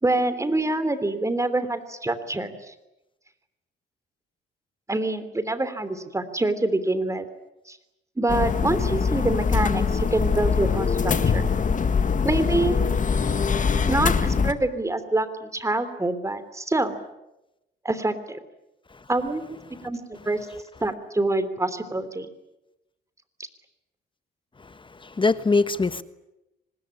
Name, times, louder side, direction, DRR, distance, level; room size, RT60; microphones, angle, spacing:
voice 1, 0.0-2.7 4.9-7.3 7.7-7.8 8.2-11.4 12.2-12.8 13.9-16.9 17.8-18.4 19.1-19.6 19.8-20.0 20.2-20.4 20.8-22.3, right 2 dB, 15° right, 12 dB, 3.2 m, -26 dB
sound 1, 8.3-14.5, left 5 dB, 40° left, 1.9 m, -23 dB
voice 2, 24.6-26.0, left 3 dB, 25° left, 13 dB, 1.3 m, -24 dB
25.5 x 20.0 x 9.9 m, 0.92 s
cardioid pair, 90°, 20 cm